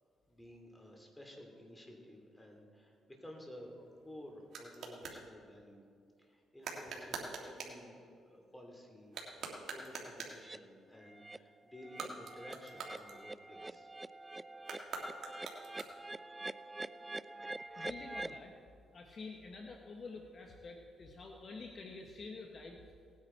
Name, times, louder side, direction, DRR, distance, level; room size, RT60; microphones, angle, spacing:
voice 1, 0.3-3.7 4.0-5.8 6.2-8.0 8.3-9.2 9.4-13.9 14.2-14.4, left 1 dB, 10° left, 1 dB, 2.8 m, -53 dB
sound 1, 3.6-5.2 6.6-7.8 9.0-10.5 11.8-13.6 14.6-16.2, right 4 dB, 65° right, 2.1 m, -45 dB
sound 2, 10.4-10.6 11.0-11.4 11.7-18.4, right 2 dB, 15° right, 0.3 m, -46 dB
voice 2, 17.5-18.6 18.9-22.9, left 3 dB, 45° left, 2 dB, 1.2 m, -48 dB
18.5 x 9.6 x 4.5 m, 2.3 s
cardioid pair, 90°, 0 cm